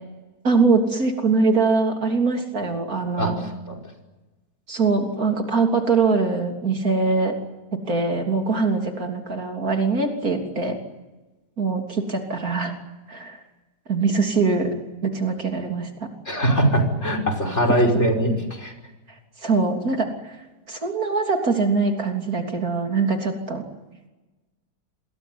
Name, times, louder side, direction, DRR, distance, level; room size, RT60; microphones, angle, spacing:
voice 1, 0.4-3.4 4.7-7.4 7.7-10.8 11.6-12.7 13.1-13.4 13.9-14.7 15.0-16.1 17.8-18.0 19.4-20.4 20.7-23.6, right 4 dB, 60° right, 3 dB, 3.6 m, -22 dB
voice 2, 16.3-18.7, right 1 dB, 40° left, 6 dB, 5.8 m, -21 dB
27.5 x 21.5 x 9.6 m, 1.1 s
omnidirectional pair, 1.8 m